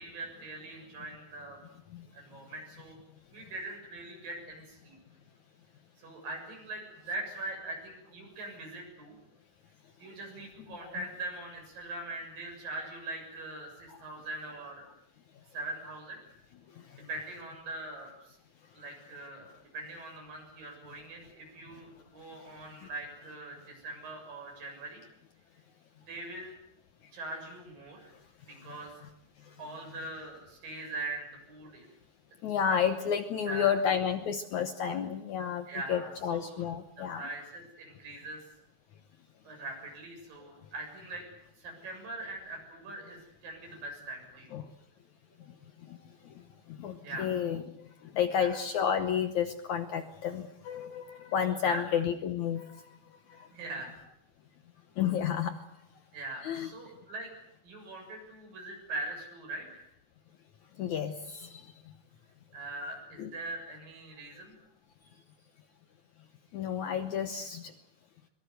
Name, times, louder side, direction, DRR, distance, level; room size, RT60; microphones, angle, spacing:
voice 1, 0.0-1.6 2.1-3.0 3.3-5.0 6.0-9.2 10.0-14.9 15.5-16.2 17.1-18.4 18.7-25.0 26.1-26.5 27.1-28.1 28.4-28.9 29.6-31.9 33.5-33.8 35.7-36.6 37.0-38.4 39.5-41.2 41.6-44.5 47.0-47.4 48.3-48.6 51.6-51.8 53.5-54.0 56.1-57.3 57.6-59.9 62.5-64.6, right 2 dB, 65° right, 2 dB, 8.9 m, -42 dB
voice 2, 28.6-29.1 32.4-37.2 44.5-44.7 45.9-46.0 46.7-47.9 48.1-52.8 53.3-53.5 55.0-55.6 56.4-56.7 60.8-61.7 63.2-63.3 66.5-67.7, left 8 dB, 65° left, 9 dB, 2.0 m, -31 dB
23.5 x 22.5 x 8.0 m, 0.78 s
omnidirectional pair, 4.4 m